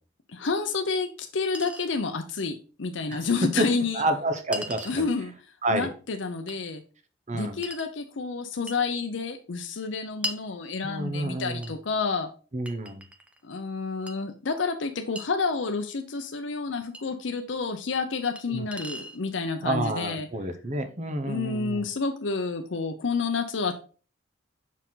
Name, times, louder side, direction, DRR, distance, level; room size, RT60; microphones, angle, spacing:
voice 1, 0.3-4.0 4.9-5.3 5.7-6.8 7.3-12.3 13.4-20.3 21.2-23.7, left 4 dB, 75° left, 0.7 m, -29 dB
Chink clink, 0.6-0.7 1.5-1.9 3.1-3.2 4.5-5.1 6.5-6.6 7.6-7.9 8.7-8.9 10.2-10.5 11.6-11.8 12.7-13.4 14.1-14.2 15.2-15.3 16.9-17.0 18.4-18.5 18.7-19.2, equal, 5° right, 0.6 m, -37 dB
voice 2, 3.9-5.1 5.6-5.9 7.3-7.6 10.8-11.7 12.5-13.0 18.5-18.7 19.6-21.8, right 1 dB, 40° right, 0.9 m, -29 dB
6.0 x 4.5 x 3.8 m
head